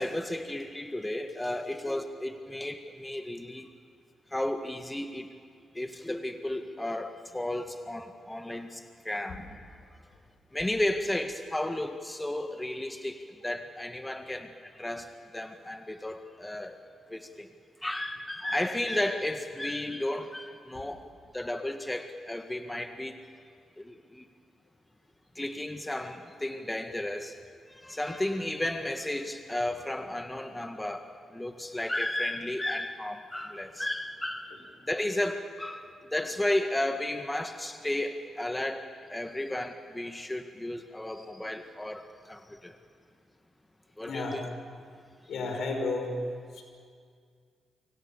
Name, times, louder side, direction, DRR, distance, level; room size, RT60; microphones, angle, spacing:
voice 1, 0.0-3.7 4.3-5.3 5.7-9.5 9.9-10.0 10.5-16.8 17.1-17.5 17.8-21.1 21.3-23.2 23.8-24.3 25.4-27.4 27.7-34.6 34.8-42.8 44.0-44.5, left 1 dB, 15° left, 7 dB, 1.8 m, -33 dB
voice 2, 44.0-44.4 45.3-46.1 46.5-46.6, left 3 dB, 70° left, 4 dB, 5.4 m, -32 dB
29.0 x 25.5 x 7.2 m, 2.2 s
hypercardioid pair, 45°, 0 cm